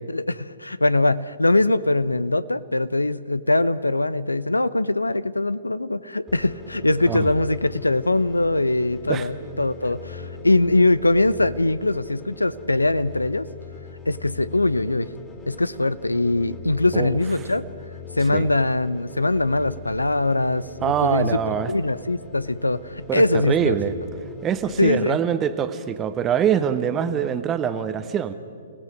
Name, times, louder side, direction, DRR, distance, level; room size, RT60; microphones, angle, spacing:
voice 1, 0.1-13.5 14.1-15.1 15.5-17.6 18.2-21.4 21.7-23.7 24.8-25.2, left 2 dB, 85° left, 18 dB, 0.6 m, -22 dB
sound 1, 6.3-24.9, left 4 dB, 15° left, 2.8 m, -41 dB
voice 2, 20.8-21.7 23.1-23.9 24.4-28.3, right 8 dB, 20° right, 11 dB, 1.0 m, -24 dB
29.5 x 17.0 x 5.4 m, 2.3 s
figure-of-eight pair, 120°, 0 cm